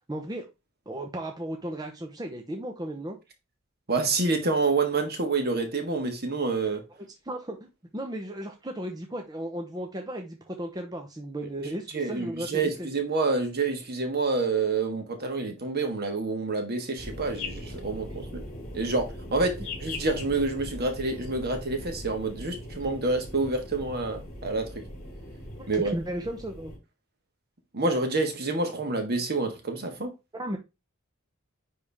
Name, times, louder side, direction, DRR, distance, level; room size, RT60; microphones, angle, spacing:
voice 1, 0.1-0.5 0.9-3.2 7.2-12.9 25.6-26.7 30.3-30.6, right 1 dB, 20° right, 0.8 m, -35 dB
voice 2, 3.9-6.8 11.9-18.4 18.7-19.5 19.8-24.7 25.7-25.9 27.7-30.1, right 3 dB, 50° right, 1.7 m, -28 dB
sound 1, 17.0-26.8, left 1 dB, 45° left, 4.8 m, -40 dB
9.8 x 3.5 x 3.5 m
head